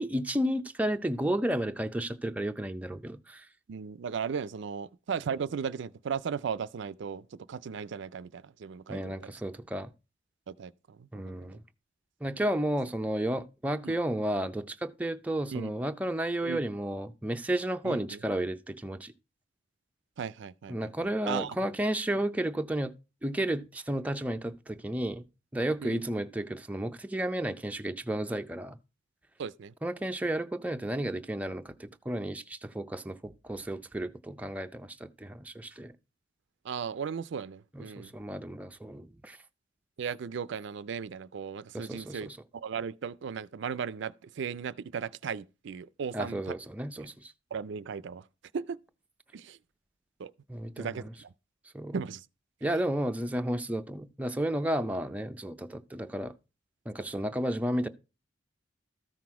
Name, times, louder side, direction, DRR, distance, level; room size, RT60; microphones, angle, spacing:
voice 1, 0.0-3.5 8.9-9.9 11.1-11.6 12.2-19.1 20.7-22.9 23.2-25.2 25.5-28.8 29.8-35.9 37.7-39.4 41.7-42.4 46.1-47.3 50.5-50.9 51.7-52.0 52.6-56.3 56.9-57.9, right 1 dB, 10° right, 0.5 m, -32 dB
voice 2, 3.7-9.3 10.5-11.5 13.8-13.9 15.5-15.7 16.4-16.6 17.8-18.2 20.2-21.6 25.8-26.0 29.4-29.7 36.6-38.1 40.0-46.6 47.0-47.1 47.5-48.3 48.5-48.8 49.3-49.6 50.2-50.3 50.8-51.3 51.9-52.3, right 6 dB, 65° right, 0.4 m, -36 dB
13.0 x 6.0 x 4.7 m
head